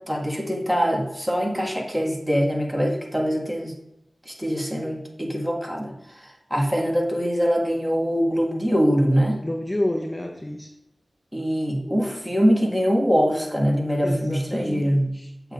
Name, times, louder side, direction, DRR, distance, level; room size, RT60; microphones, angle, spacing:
voice 1, 0.1-3.7 4.3-5.9 6.5-9.4 11.3-15.1 15.4-15.5, equal, 10° right, -1 dB, 1.7 m, -23 dB
voice 2, 9.4-10.7 14.0-15.3, left 1 dB, 20° left, 1 dB, 0.8 m, -29 dB
8.0 x 6.8 x 2.5 m, 0.87 s
cardioid pair, 45°, 0 cm